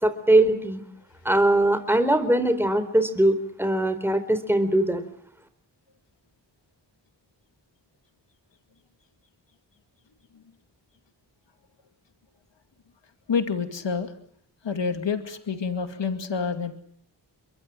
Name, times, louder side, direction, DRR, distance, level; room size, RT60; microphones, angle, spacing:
voice 1, 0.0-0.8 1.3-5.0, right 1 dB, 5° right, 10 dB, 4.1 m, -21 dB
voice 2, 13.3-14.1 14.6-16.7, left 5 dB, 85° left, 8 dB, 2.4 m, -28 dB
27.0 x 22.5 x 7.7 m, 0.65 s
cardioid pair, 45°, 43 cm